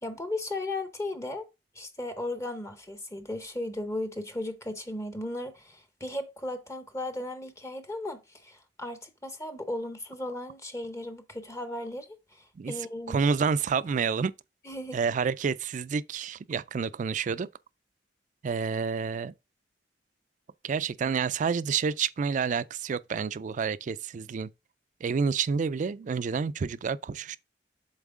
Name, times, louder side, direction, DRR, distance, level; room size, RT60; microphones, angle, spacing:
voice 1, 0.0-1.5 1.7-13.2 14.7-15.0, left 1 dB, 15° left, 0.7 m, -36 dB
voice 2, 13.1-14.3 14.9-17.5 18.4-19.3 20.6-24.5 25.0-27.4, right 5 dB, 45° right, 0.3 m, -29 dB
7.2 x 4.0 x 3.6 m
head